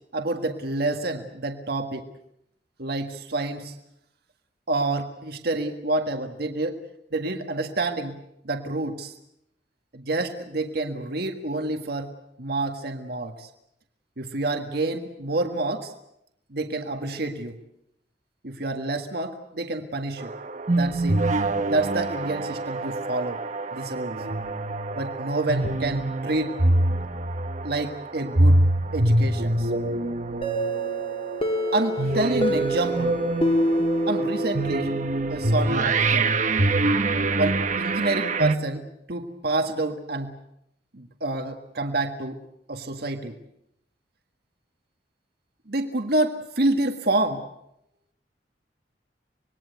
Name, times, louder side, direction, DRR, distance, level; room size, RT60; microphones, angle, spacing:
voice 1, 0.1-2.1 2.8-3.7 4.7-6.8 7.1-8.2 8.4-9.1 9.9-12.1 12.4-13.5 14.2-15.9 16.5-17.6 18.4-20.3 20.7-21.2 21.7-23.4 23.7-24.2 24.9-26.6 27.6-28.6 28.9-29.7 31.7-33.2 34.1-35.0 35.3-36.3 37.4-40.3 40.9-42.4 42.7-43.4 45.7-47.4, right 2 dB, 65° right, 6 dB, 1.7 m, -28 dB
sound 1, 20.2-38.6, right 2 dB, 45° right, 1.1 m, -25 dB
sound 2, 30.4-35.1, equal, 35° left, 2.1 m, -27 dB
26.0 x 21.0 x 8.1 m, 0.78 s
head